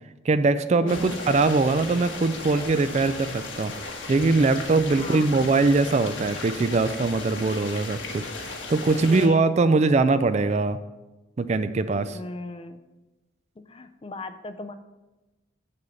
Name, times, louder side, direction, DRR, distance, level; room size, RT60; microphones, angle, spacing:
voice 1, 0.2-10.8 11.4-12.2, right 3 dB, 35° right, 12 dB, 0.3 m, -22 dB
voice 2, 0.8-1.2 4.9-5.3 8.9-9.8 12.1-12.8 13.6-14.7, left 3 dB, 30° left, 9 dB, 0.4 m, -38 dB
sound 1, 0.9-9.3, left 3 dB, 80° left, 1.4 m, -36 dB
7.1 x 6.8 x 5.0 m, 1.1 s
head